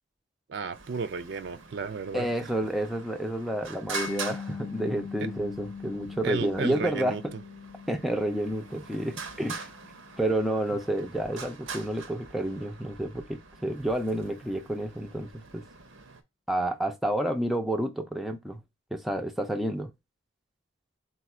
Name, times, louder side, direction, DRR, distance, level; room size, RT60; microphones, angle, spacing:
voice 1, 0.5-2.3 6.2-7.2, right 5 dB, 55° right, 0.4 m, -33 dB
Traffic noise roadway noise, 0.7-16.2, right 5 dB, 85° right, 0.7 m, -44 dB
voice 2, 2.1-7.2 7.9-9.7 10.2-15.6 16.5-18.6 18.9-19.9, right 1 dB, ahead, 0.4 m, -30 dB
Mallet percussion, 3.9-10.7, left 6 dB, 70° left, 0.4 m, -42 dB
4.2 x 2.3 x 4.2 m
head